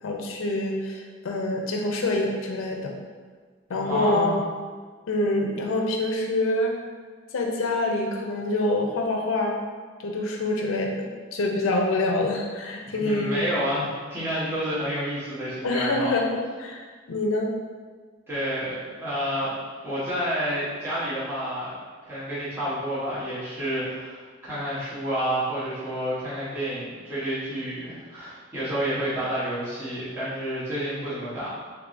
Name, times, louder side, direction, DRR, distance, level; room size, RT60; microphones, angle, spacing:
voice 1, 0.0-2.9 3.7-4.3 5.1-6.8 7.3-9.6 10.0-13.5 15.6-17.5, left 2 dB, 80° left, 1 dB, 0.4 m, -26 dB
voice 2, 3.8-4.4 13.0-16.1 18.3-19.5 19.8-21.8 22.0-31.5, equal, 10° right, -13 dB, 0.9 m, -29 dB
3.4 x 3.3 x 2.5 m, 1.5 s
head